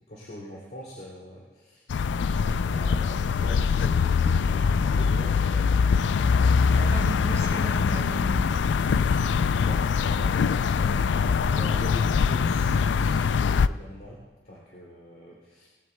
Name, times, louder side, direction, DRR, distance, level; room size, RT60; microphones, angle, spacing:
voice 1, 0.1-1.8 2.6-7.1 9.5-14.2 14.4-15.7, equal, 60° left, -5 dB, 2.7 m, -43 dB
sound 1, 1.9-13.7, left 5 dB, 90° left, 0.4 m, -23 dB
voice 2, 6.8-8.7, right 1 dB, 20° right, -5 dB, 3.8 m, -35 dB
20.0 x 15.0 x 2.2 m, 1.4 s
head